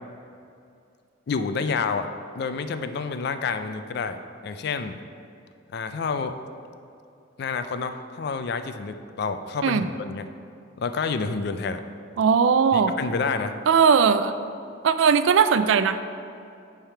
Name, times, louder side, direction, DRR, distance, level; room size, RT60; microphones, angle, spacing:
voice 1, 1.3-2.1 2.4-4.2 4.4-5.0 5.7-6.4 7.4-10.3 10.8-11.8 12.7-13.5, left 5 dB, 55° left, 9 dB, 0.4 m, -28 dB
voice 2, 12.2-12.9 13.7-14.3 14.8-16.0, right 6 dB, 70° right, 11 dB, 0.3 m, -19 dB
10.5 x 3.5 x 4.5 m, 2.5 s
head